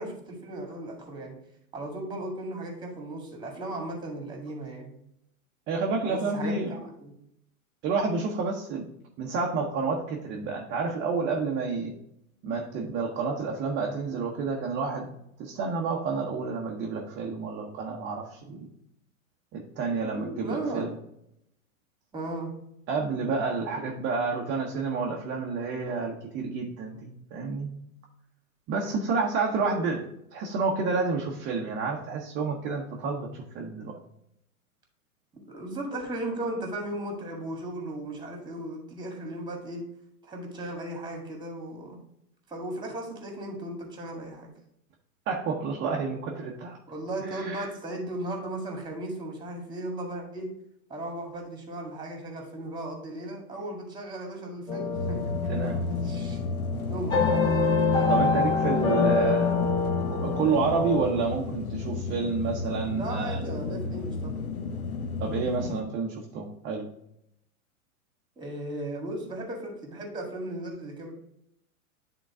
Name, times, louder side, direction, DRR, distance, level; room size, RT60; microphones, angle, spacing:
voice 1, 0.0-1.4 1.7-4.9 6.1-7.1 20.0-20.9 22.1-22.5 29.6-29.9 35.5-39.8 40.2-42.0 42.5-44.5 46.9-50.5 50.9-55.3 55.9-56.4 56.9-57.3 62.9-64.3 68.4-71.1, right 1 dB, 10° right, 1 dB, 1.8 m, -36 dB
voice 2, 5.7-6.7 7.8-8.9 9.2-11.9 12.4-15.1 15.4-18.7 19.5-20.9 22.9-27.7 28.7-30.0 30.3-34.0 45.3-46.8 47.3-47.7 55.5-55.8 58.1-59.6 60.0-63.4 65.2-66.9, right 4 dB, 25° right, -1 dB, 0.9 m, -29 dB
sound 1, 54.7-61.0, left 4 dB, 10° left, 0.8 m, -26 dB
sound 2, 54.9-65.8, left 3 dB, 80° left, 0.9 m, -33 dB
9.3 x 3.9 x 3.6 m, 0.77 s
hypercardioid pair, 115°, 43 cm